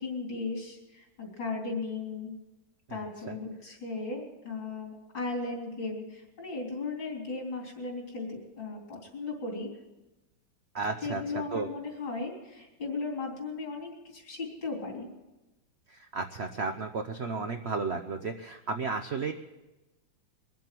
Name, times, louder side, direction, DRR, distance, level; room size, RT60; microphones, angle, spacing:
voice 1, 0.0-2.3 2.9-9.7 11.0-15.1, left 3 dB, 70° left, 0 dB, 4.2 m, -36 dB
voice 2, 10.7-11.2 11.5-11.7 15.9-19.3, right 4 dB, 65° right, 6 dB, 0.6 m, -33 dB
23.0 x 7.6 x 7.6 m, 1.0 s
omnidirectional pair, 2.1 m